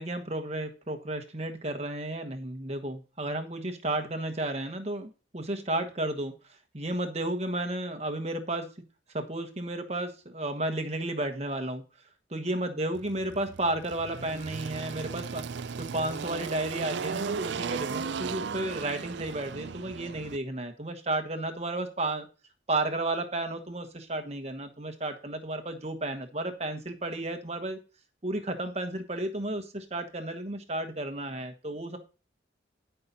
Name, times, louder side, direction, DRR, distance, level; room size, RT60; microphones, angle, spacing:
voice 1, 0.0-6.3 6.7-8.7 9.1-11.8 12.3-15.4 15.8-22.3 22.7-27.8 28.2-32.0, right 1 dB, 35° right, 6 dB, 1.3 m, -32 dB
Engine, 12.9-20.4, right 6 dB, 60° right, 0.4 m, -36 dB
13.0 x 5.8 x 4.2 m, 0.34 s
head